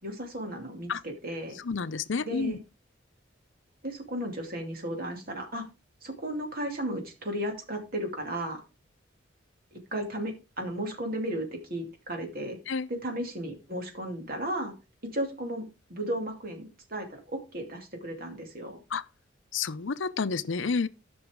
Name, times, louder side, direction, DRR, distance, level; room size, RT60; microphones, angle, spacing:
voice 1, 0.0-1.6 2.2-2.6 3.8-5.6 6.0-8.6 9.9-12.6 12.9-14.7 15.1-18.8, right 1 dB, 50° right, 2.6 m, -34 dB
voice 2, 1.6-2.6 12.7-12.9 18.9-19.0 19.5-20.9, left 5 dB, 70° left, 0.6 m, -30 dB
14.0 x 6.1 x 3.6 m
head